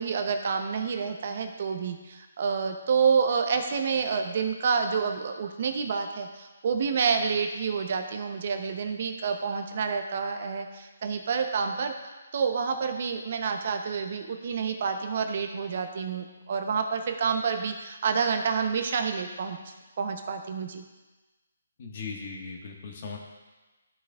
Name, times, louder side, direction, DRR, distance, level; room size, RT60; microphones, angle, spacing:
voice 1, 0.0-20.8, right 6 dB, 50° right, 6 dB, 0.7 m, -28 dB
voice 2, 21.8-23.2, left 4 dB, 45° left, 0 dB, 1.4 m, -38 dB
12.0 x 6.1 x 2.4 m, 1.2 s
hypercardioid pair, 155°, 0 cm